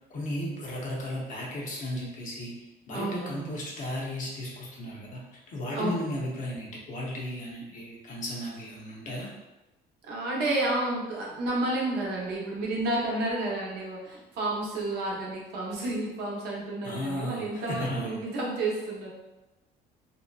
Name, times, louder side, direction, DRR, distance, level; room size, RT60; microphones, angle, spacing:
voice 1, 0.1-2.5 2.9-9.3 16.8-18.2, left 1 dB, 50° left, -3 dB, 0.7 m, -35 dB
voice 2, 2.9-3.6 5.7-6.2 10.0-19.1, right 2 dB, 75° right, -3 dB, 0.7 m, -31 dB
2.6 x 2.1 x 2.3 m, 1.0 s
cardioid pair, 110°, 17 cm